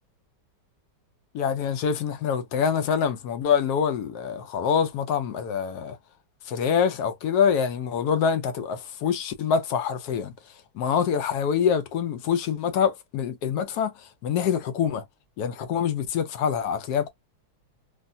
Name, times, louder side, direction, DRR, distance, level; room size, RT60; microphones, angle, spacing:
voice 1, 1.3-6.0 6.4-10.3 10.7-15.0 15.4-17.1, left 7 dB, 70° left, 1.1 m, -25 dB
3.4 x 2.4 x 2.5 m
omnidirectional pair, 1.9 m